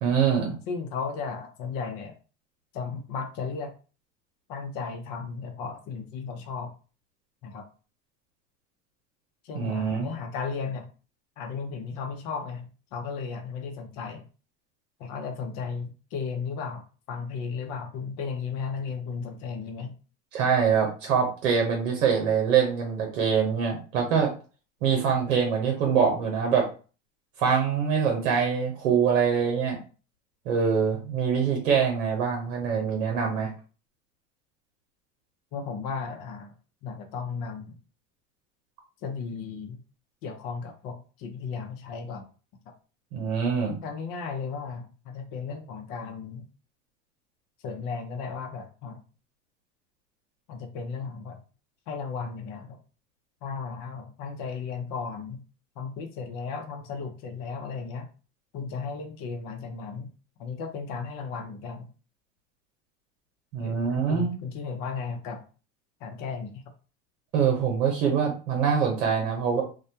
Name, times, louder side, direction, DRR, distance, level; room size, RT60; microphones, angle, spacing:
voice 1, 0.0-0.6 9.5-10.1 20.3-24.3 24.8-26.7 27.4-29.8 30.5-33.5 43.1-43.8 63.5-64.3 67.3-69.6, right 6 dB, 85° right, 1 dB, 0.7 m, -24 dB
voice 2, 0.7-2.1 2.7-3.7 4.5-6.7 7.4-7.7 9.4-10.9 11.4-14.2 15.0-19.9 35.5-36.5 36.8-37.8 39.0-39.8 40.2-42.3 43.8-46.5 47.6-49.0 50.5-51.4 51.9-52.8 53.4-55.4 55.8-58.1 58.5-60.1 60.4-61.9 63.6-65.4 66.0-66.7, left 5 dB, 65° left, 5 dB, 0.7 m, -35 dB
2.3 x 2.1 x 2.7 m, 0.35 s
hypercardioid pair, 80°, 37 cm